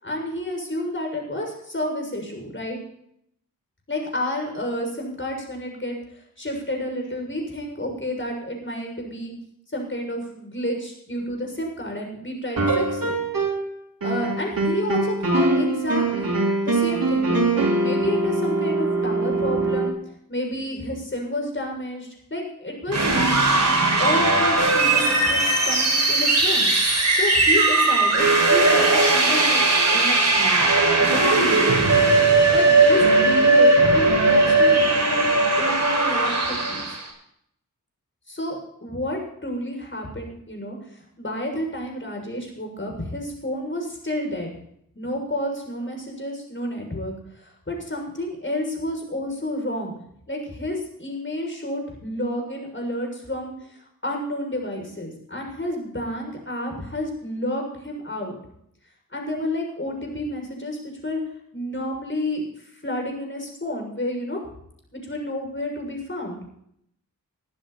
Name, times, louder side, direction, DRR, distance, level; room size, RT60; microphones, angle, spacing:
voice 1, 0.0-2.8 3.9-9.3 9.7-13.2 14.0-16.3 16.6-20.0 20.3-23.0 24.0-26.7 27.1-29.6 29.9-31.9 32.5-35.3 35.6-37.0 38.3-40.8 41.2-44.5 45.0-50.0 50.3-58.4 59.1-61.2 61.5-62.4 62.8-64.4 64.9-66.4, left 1 dB, 35° left, 1 dB, 7.0 m, -30 dB
sound 1, 12.6-13.7 14.0-19.9, right 2 dB, 80° right, 4.0 m, -23 dB
sound 2, 22.9-37.0, right 2 dB, 50° right, 6.3 m, -18 dB
22.0 x 12.0 x 4.3 m, 0.71 s
wide cardioid pair, 85°, 34 cm